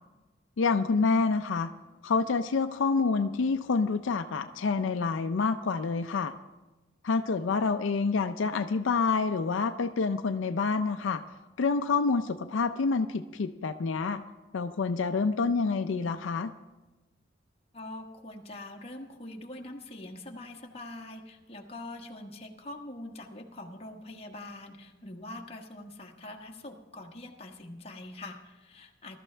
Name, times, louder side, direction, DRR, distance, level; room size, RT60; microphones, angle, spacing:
voice 1, 0.6-1.7 2.0-6.3 7.0-11.2 11.6-14.2 14.5-16.5, left 4 dB, 75° left, 9 dB, 0.5 m, -27 dB
voice 2, 17.7-29.2, left 1 dB, 30° left, 2 dB, 1.3 m, -44 dB
21.0 x 12.5 x 3.3 m, 1.1 s
head